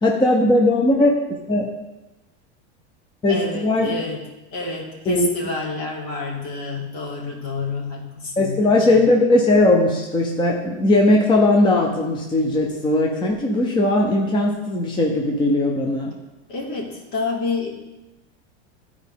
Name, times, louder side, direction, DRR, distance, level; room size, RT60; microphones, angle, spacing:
voice 1, 0.0-1.2 1.5-1.7 3.2-3.9 5.1-5.3 8.4-16.1, left 2 dB, 15° left, 1 dB, 0.7 m, -18 dB
voice 2, 3.3-4.2 4.5-9.0 16.5-17.7, left 3 dB, 60° left, -2 dB, 2.4 m, -29 dB
12.0 x 4.7 x 3.6 m, 1.0 s
supercardioid pair, 130°, 34 cm